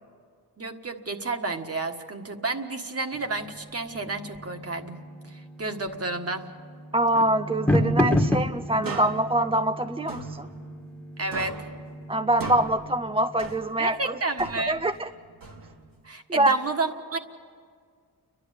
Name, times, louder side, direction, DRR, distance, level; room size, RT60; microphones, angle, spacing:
voice 1, 0.6-5.0 5.2-6.4 11.2-11.7 13.8-14.8 16.0-17.2, right 3 dB, 40° right, 6 dB, 1.5 m, -31 dB
sound 1, 3.1-13.9, left 1 dB, 5° left, 1.4 m, -31 dB
voice 2, 6.9-10.5 12.1-15.1 16.3-16.5, right 1 dB, 15° right, 9 dB, 0.4 m, -25 dB
sound 2, 8.8-11.1 11.3-14.0 14.4-16.0, right 3 dB, 60° right, 1.7 m, -39 dB
29.5 x 11.5 x 8.4 m, 2.1 s
cardioid pair, 65°, 38 cm